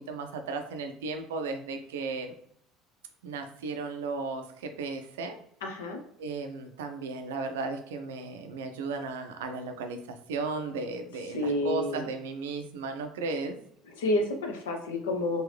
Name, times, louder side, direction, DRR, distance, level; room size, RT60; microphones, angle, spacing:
voice 1, 0.0-2.3 3.2-5.4 6.2-13.6, right 4 dB, 70° right, 6 dB, 0.4 m, -35 dB
voice 2, 5.6-6.0 11.3-12.1 14.0-15.4, left 2 dB, 70° left, 4 dB, 0.6 m, -29 dB
3.8 x 2.6 x 3.1 m, 0.69 s
figure-of-eight pair, 60°, 0 cm